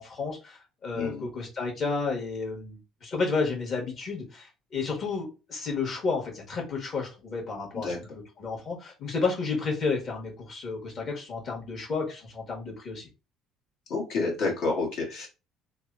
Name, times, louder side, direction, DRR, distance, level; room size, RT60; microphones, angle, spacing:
voice 1, 0.0-7.9 8.4-13.1, left 4 dB, 45° left, 0 dB, 1.4 m, -31 dB
voice 2, 0.9-1.3 7.7-8.0 13.9-15.3, left 3 dB, 70° left, -1 dB, 1.4 m, -29 dB
3.4 x 2.2 x 2.6 m, 0.30 s
cardioid pair, 100°, 0 cm